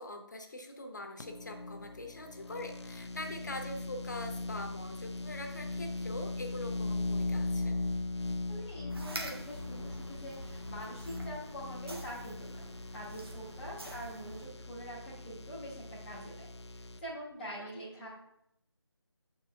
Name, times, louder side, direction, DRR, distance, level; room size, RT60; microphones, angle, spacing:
voice 1, 0.0-7.7 17.6-17.7, left 2 dB, 45° left, 5 dB, 0.8 m, -43 dB
sound 1, 1.2-17.0, left 2 dB, 80° left, 0.5 m, -39 dB
voice 2, 8.5-18.1, equal, ahead, -15 dB, 0.5 m, -45 dB
sound 2, 8.9-14.5, right 1 dB, 65° right, 1.2 m, -47 dB
7.1 x 4.5 x 3.3 m, 0.79 s
figure-of-eight pair, 160°, 14 cm